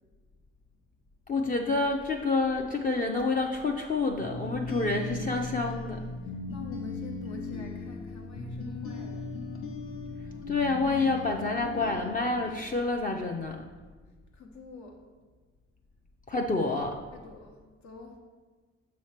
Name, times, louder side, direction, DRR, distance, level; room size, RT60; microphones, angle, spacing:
voice 1, 1.3-6.0 10.5-13.6 16.3-16.9, left 3 dB, 25° left, 1 dB, 0.5 m, -28 dB
sound 1, 4.2-12.9, left 3 dB, 45° left, 0.9 m, -38 dB
voice 2, 6.2-9.4 14.3-15.0 17.1-18.2, left 3 dB, 70° left, 1 dB, 1.2 m, -47 dB
6.4 x 3.1 x 5.8 m, 1.4 s
cardioid pair, 90°, 30 cm